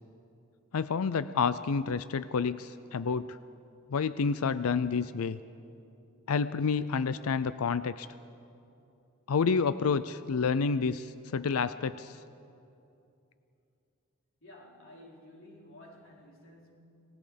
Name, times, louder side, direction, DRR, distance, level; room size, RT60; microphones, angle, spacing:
voice 1, 0.7-3.4 3.9-5.4 6.3-8.1 9.3-12.2, left 5 dB, 80° left, 14 dB, 0.5 m, -29 dB
voice 2, 14.4-16.8, left 1 dB, 65° left, -3 dB, 4.5 m, -53 dB
30.0 x 18.5 x 5.2 m, 2.6 s
head